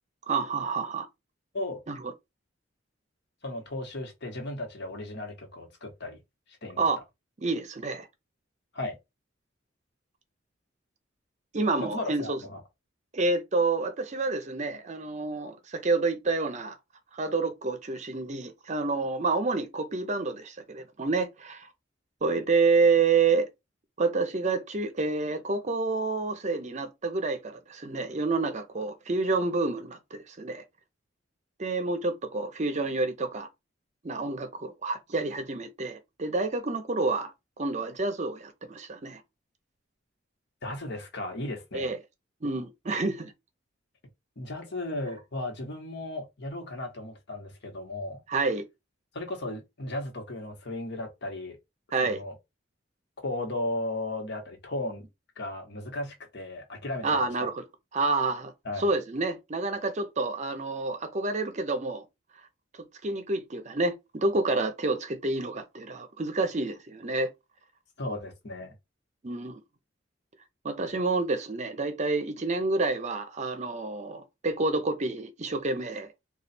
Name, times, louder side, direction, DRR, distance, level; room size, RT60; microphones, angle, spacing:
voice 1, 0.3-1.1 1.9-2.0 6.8-7.0 7.4-8.1 11.5-12.4 13.1-16.8 17.1-21.7 22.2-23.5 24.0-30.6 31.6-33.5 34.0-37.3 37.6-39.2 41.7-42.0 42.4-43.3 48.3-48.6 51.9-52.2 57.0-57.6 57.9-58.5 58.8-62.0 63.0-67.3 69.2-69.6 70.6-76.1, right 3 dB, 40° right, 0.6 m, -28 dB
voice 2, 3.4-6.2 6.5-6.9 8.7-9.0 11.8-12.6 40.6-41.9 44.4-48.2 49.1-51.6 52.0-52.3 53.2-55.1 55.4-57.5 58.6-58.9 68.0-68.7, left 2 dB, 65° left, 1.2 m, -35 dB
3.1 x 2.4 x 4.2 m
head